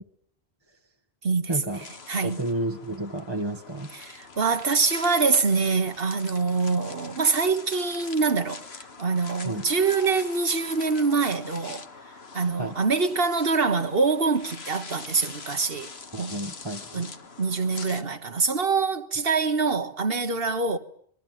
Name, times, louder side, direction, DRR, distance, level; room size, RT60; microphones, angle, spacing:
voice 1, 1.5-1.8 2.2-3.9 9.4-9.6 12.6-12.7 16.1-17.1, right 2 dB, 25° right, 1.3 m, -31 dB
sound 1, 1.7-18.0, left 4 dB, 80° left, 1.7 m, -44 dB
voice 2, 2.1-2.4 4.0-11.9 12.3-15.9 16.2-16.3 16.9-17.1 17.4-20.8, right 4 dB, 65° right, 1.7 m, -25 dB
25.5 x 21.5 x 9.2 m
omnidirectional pair, 1.1 m